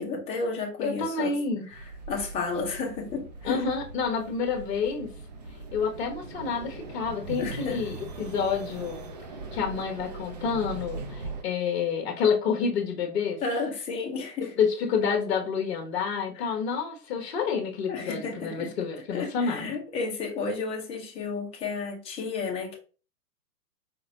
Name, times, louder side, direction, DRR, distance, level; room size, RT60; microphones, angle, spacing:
voice 1, 0.0-1.3 1.7-3.6 7.4-7.8 13.4-14.5 16.3-16.5 17.9-22.8, left 4 dB, 15° left, 0 dB, 0.9 m, -32 dB
voice 2, 0.8-1.7 3.4-5.1 5.7-9.0 9.5-13.4 14.6-19.7, left 6 dB, 40° left, 3 dB, 1.0 m, -28 dB
sound 1, 1.7-11.4, right 3 dB, 30° right, 0.4 m, -40 dB
4.5 x 3.9 x 2.6 m, 0.36 s
figure-of-eight pair, 125°, 47 cm